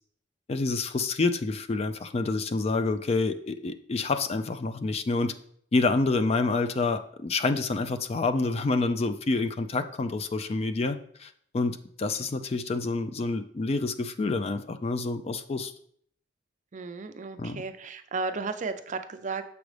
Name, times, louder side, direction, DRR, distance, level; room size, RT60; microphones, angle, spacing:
voice 1, 0.5-5.3 5.7-15.7 17.4-17.6, left 3 dB, 35° left, 10 dB, 0.4 m, -28 dB
voice 2, 16.7-19.4, right 4 dB, 45° right, 9 dB, 0.4 m, -34 dB
6.9 x 5.1 x 3.2 m, 0.63 s
head